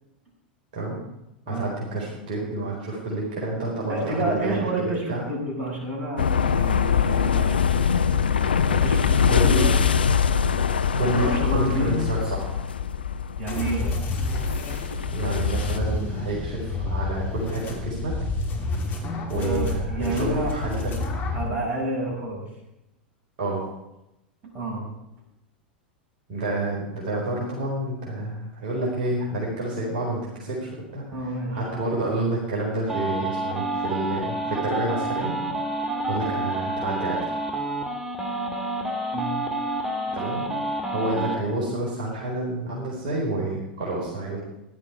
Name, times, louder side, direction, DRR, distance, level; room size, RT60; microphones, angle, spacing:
voice 1, 1.5-4.6 5.1-5.2 9.3-9.6 10.9-12.5 15.1-18.1 19.3-21.0 23.4-23.6 26.3-31.0 31.5-35.4 36.1-37.3 40.1-40.4 40.9-44.4, right 2 dB, 55° right, -4 dB, 4.3 m, -29 dB
voice 2, 3.9-9.8 10.5-12.0 13.4-13.9 14.7-14.9 19.4-20.5 21.3-22.4 24.5-24.9 31.1-31.6 38.3-38.4 39.1-39.4, right 1 dB, 30° right, -3 dB, 6.4 m, -30 dB
sound 1, 6.2-15.8, left 7 dB, 75° left, 0.6 m, -23 dB
sound 2, 13.5-21.5, left 3 dB, 35° left, 3.0 m, -29 dB
sound 3, 32.9-41.4, right 2 dB, 10° right, 2.5 m, -28 dB
15.5 x 11.5 x 4.8 m, 0.88 s
figure-of-eight pair, 90°, 5 cm